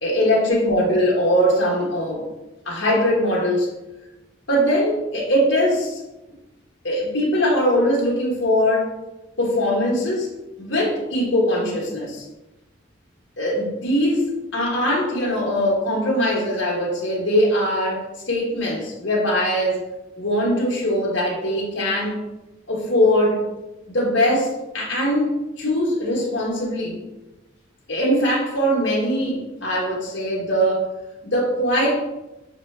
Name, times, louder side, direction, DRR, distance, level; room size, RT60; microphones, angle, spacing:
voice 1, 0.0-2.2 2.6-3.7 4.5-6.0 6.8-8.9 9.4-10.3 10.6-12.3 13.4-19.8 20.2-22.2 22.7-23.4 23.9-27.0 27.9-30.9 31.2-32.0, equal, 70° left, -4 dB, 1.2 m, -21 dB
6.6 x 2.2 x 3.2 m, 1.0 s
head